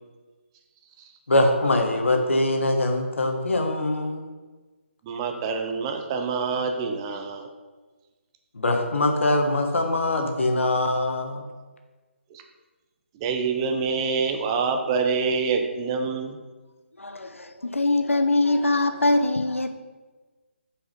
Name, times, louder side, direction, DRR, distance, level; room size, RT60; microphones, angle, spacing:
voice 1, 1.3-4.3 8.5-11.5, left 2 dB, 70° left, 3 dB, 1.2 m, -23 dB
voice 2, 5.0-7.5 12.3-12.4 13.2-16.4, right 5 dB, 25° right, 5 dB, 0.7 m, -26 dB
voice 3, 17.0-19.7, left 2 dB, 90° left, 8 dB, 0.7 m, -23 dB
6.0 x 4.9 x 5.2 m, 1.3 s
figure-of-eight pair, 145°, 7 cm